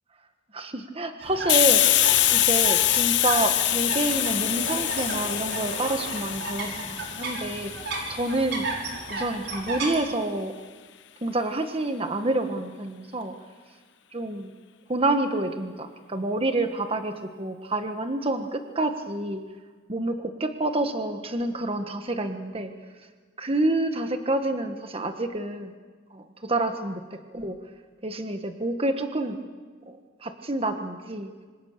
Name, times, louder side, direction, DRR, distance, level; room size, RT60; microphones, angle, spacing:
voice 1, 0.5-8.7 9.1-10.5 11.2-13.3 14.1-14.5 14.9-19.4 19.9-22.7 23.4-25.7 26.1-27.7 28.0-29.4 29.8-31.3, right 2 dB, 30° right, 7 dB, 1.5 m, -28 dB
sound 1, 1.2-10.0, right 2 dB, 60° right, 5.6 m, -34 dB
Hiss, 1.5-8.9, left 14 dB, 65° left, 0.9 m, -24 dB
26.5 x 26.0 x 6.7 m, 1.5 s
head